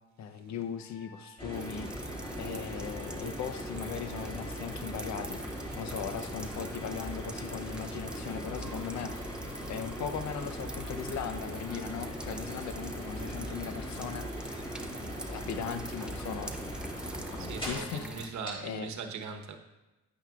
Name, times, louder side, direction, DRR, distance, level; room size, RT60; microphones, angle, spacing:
voice 1, 0.2-5.4 5.8-9.1 9.7-14.7 15.0-16.5 17.4-18.9, left 7 dB, 65° left, 9 dB, 0.7 m, -39 dB
Trumpet, 0.8-9.3, equal, 80° left, 1.9 m, -59 dB
sound 1, 1.4-17.9 18.5-18.6, equal, 15° left, 3.1 m, -40 dB
sound 2, 1.5-18.3, right 1 dB, 5° right, 0.7 m, -45 dB
voice 2, 17.4-19.6, right 5 dB, 70° right, 6 dB, 1.1 m, -40 dB
9.8 x 9.0 x 2.4 m, 1.0 s
cardioid pair, 90°, 30 cm